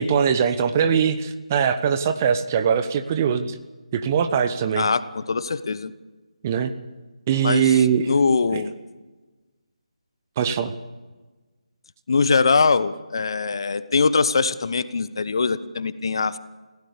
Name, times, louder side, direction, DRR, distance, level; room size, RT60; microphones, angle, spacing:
voice 1, 0.0-3.6 3.9-4.9 6.4-6.7 7.3-8.1 8.5-8.6 10.4-10.7, right 7 dB, 25° right, 9 dB, 1.0 m, -21 dB
voice 2, 4.8-5.9 7.4-7.7 8.0-8.7 12.1-16.4, left 4 dB, 45° left, 15 dB, 1.0 m, -22 dB
25.0 x 16.5 x 6.9 m, 1.2 s
figure-of-eight pair, 155°, 4 cm